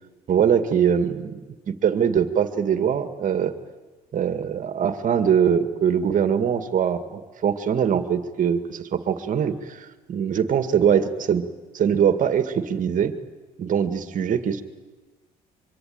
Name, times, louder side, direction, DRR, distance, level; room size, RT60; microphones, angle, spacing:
voice 1, 0.3-1.4 1.7-3.5 4.1-11.5 11.7-13.1 13.6-14.6, right 8 dB, 50° right, 9 dB, 2.1 m, -22 dB
24.0 x 23.5 x 9.5 m, 1.2 s
cardioid pair, 110°, 17 cm